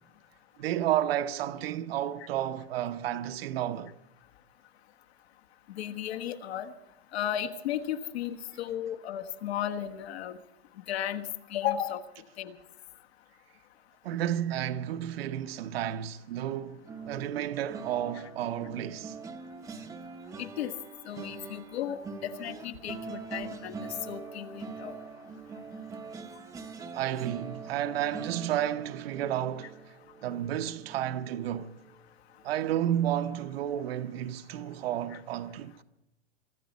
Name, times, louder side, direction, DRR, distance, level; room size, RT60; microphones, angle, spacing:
voice 1, 0.6-3.9 14.0-19.2 26.9-29.8 30.2-31.8 32.4-35.8, right 11 dB, 60° right, 1.0 m, -31 dB
voice 2, 5.7-6.7 7.1-10.4 10.9-12.0 12.4-12.5 20.4-20.7 21.0-23.8 24.1-25.0, left 10 dB, 65° left, 1.5 m, -34 dB
sound 1, 16.8-32.0 32.4-32.7 32.9-33.2, right 4 dB, 10° right, 0.8 m, -44 dB
24.5 x 12.5 x 4.2 m
supercardioid pair, 165°, 34 cm